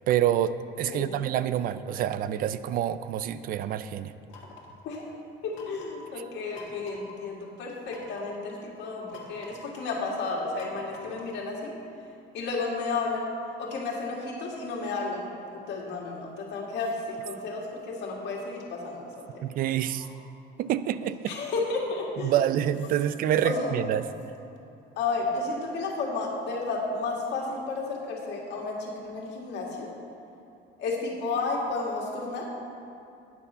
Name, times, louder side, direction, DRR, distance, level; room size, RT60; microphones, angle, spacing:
voice 1, 0.1-4.1 6.2-6.3 19.4-20.1 20.6-21.4 22.2-24.0, right 11 dB, 45° right, 13 dB, 0.4 m, -27 dB
voice 2, 0.9-1.3 4.8-5.1 5.4-11.7 12.3-13.3 13.6-15.3 15.7-19.4 20.0-20.1 21.3-22.3 23.4-23.7 25.0-29.9 30.8-32.4, left 3 dB, 60° left, -2 dB, 2.0 m, -32 dB
sound 1, 4.3-4.8 5.5-6.1 6.5-7.2 7.9-8.4 9.1-9.8 10.6-11.4, left 2 dB, 75° left, 1.7 m, -47 dB
9.6 x 6.8 x 5.6 m, 2.6 s
cardioid pair, 150°, 20 cm